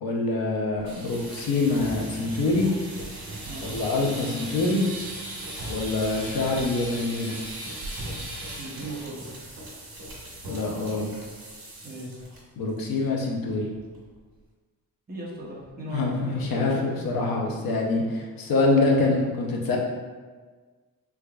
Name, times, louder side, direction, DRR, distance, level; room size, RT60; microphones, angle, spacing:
voice 1, 0.0-2.7 3.6-4.8 5.7-7.4 10.4-11.1 12.6-13.7 15.9-19.8, left 3 dB, 70° left, 0 dB, 0.7 m, -25 dB
sound 1, 0.8-12.4 12.7-13.0 13.3-13.4 13.8-14.2, right 1 dB, 70° right, 1.5 m, -38 dB
voice 2, 8.6-9.3 11.8-12.1 15.1-17.0, right 1 dB, 25° right, -6 dB, 0.7 m, -37 dB
3.7 x 3.4 x 2.3 m, 1.4 s
wide cardioid pair, 165°, 36 cm